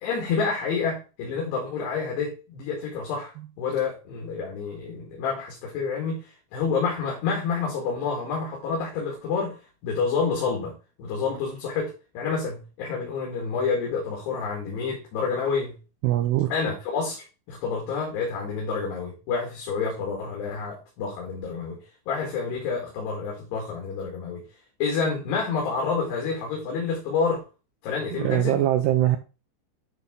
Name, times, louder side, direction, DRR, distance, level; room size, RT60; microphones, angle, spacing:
voice 1, 0.0-9.6 9.8-10.7 11.0-15.7 16.5-21.8 22.1-24.4 24.8-27.4 27.8-28.7, left 5 dB, 70° left, -1 dB, 3.8 m, -28 dB
voice 2, 16.0-16.5 28.1-29.2, right 13 dB, 85° right, 6 dB, 2.4 m, -22 dB
10.0 x 3.5 x 3.6 m, 0.31 s
omnidirectional pair, 5.1 m